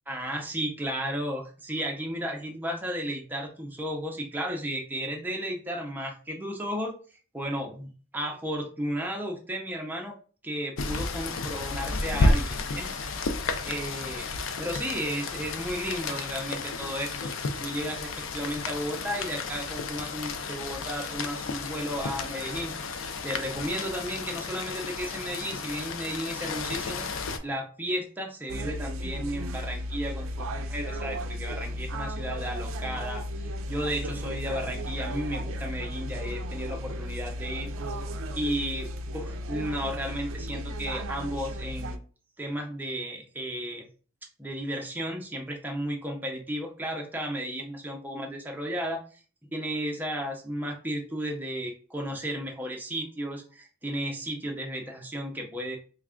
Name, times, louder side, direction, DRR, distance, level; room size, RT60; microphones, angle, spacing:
voice 1, 0.1-7.0 7.3-10.1 10.4-13.0 13.6-14.3 14.6-17.3 17.6-27.1 27.4-37.7 38.4-38.9 39.1-42.0 42.4-43.9 44.4-49.2 49.5-55.8, equal, 10° right, 1 dB, 0.5 m, -34 dB
Rain, 10.8-27.4, left 3 dB, 65° left, 0.4 m, -32 dB
sound 1, 28.5-42.0, equal, 70° right, 0.4 m, -34 dB
3.3 x 2.3 x 3.6 m, 0.41 s
head